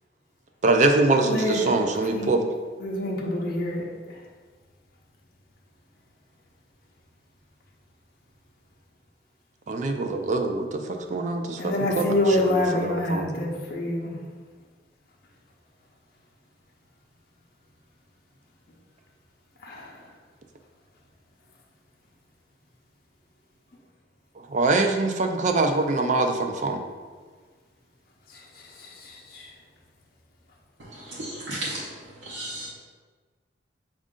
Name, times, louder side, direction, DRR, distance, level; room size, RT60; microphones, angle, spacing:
voice 1, 0.6-2.4 9.7-12.2 12.5-13.3 24.5-26.8, right 3 dB, 40° right, 5 dB, 0.3 m, -24 dB
voice 2, 1.3-1.8 2.1-2.5 2.8-3.9 11.6-14.1 19.6-20.0 28.8-29.5, left 1 dB, 55° left, -2 dB, 0.6 m, -26 dB
voice 3, 30.8-32.7, right 1 dB, 90° right, -7 dB, 0.7 m, -35 dB
5.2 x 2.5 x 3.7 m, 1.5 s
head